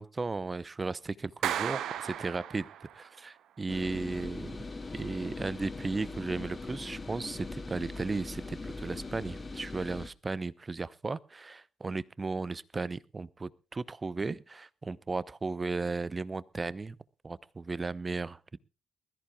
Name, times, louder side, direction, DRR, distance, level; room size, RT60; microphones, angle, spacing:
voice 1, 0.0-2.7 2.9-4.5 4.9-17.0 17.2-18.6, right 3 dB, 30° right, 20 dB, 0.8 m, -35 dB
Clapping, 1.4-3.1, right 10 dB, 60° right, 0.7 m, -34 dB
sound 1, 3.7-10.1, left 3 dB, 35° left, 1.8 m, -41 dB
22.0 x 14.0 x 2.4 m, 0.32 s
figure-of-eight pair, 40°, 0 cm